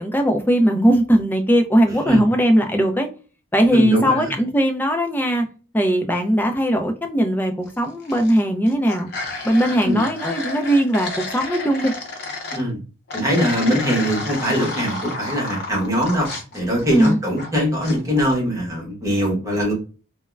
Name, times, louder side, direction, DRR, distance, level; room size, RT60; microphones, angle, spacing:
voice 1, 0.0-3.1 3.5-5.5 5.7-9.1 9.4-11.9 16.9-17.2, equal, 10° left, 4 dB, 0.4 m, -19 dB
voice 2, 3.7-4.3 9.8-10.0 12.5-12.8 13.1-16.3 16.5-19.7, equal, 15° right, -3 dB, 0.9 m, -21 dB
sound 1, 7.8-8.4 8.7-12.6 13.1-17.5 17.8-18.4, left 2 dB, 50° left, 0.7 m, -31 dB
3.5 x 2.1 x 2.2 m, 0.36 s
head